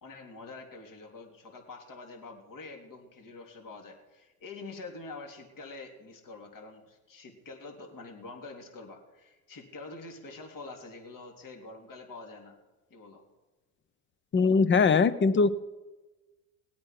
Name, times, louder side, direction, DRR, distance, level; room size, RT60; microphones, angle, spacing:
voice 1, 0.0-12.6 12.9-13.2, left 3 dB, 50° left, 2 dB, 3.6 m, -46 dB
voice 2, 14.3-15.5, left 5 dB, 25° left, 15 dB, 0.9 m, -21 dB
19.5 x 8.6 x 6.0 m, 1.2 s
hypercardioid pair, 85°, 43 cm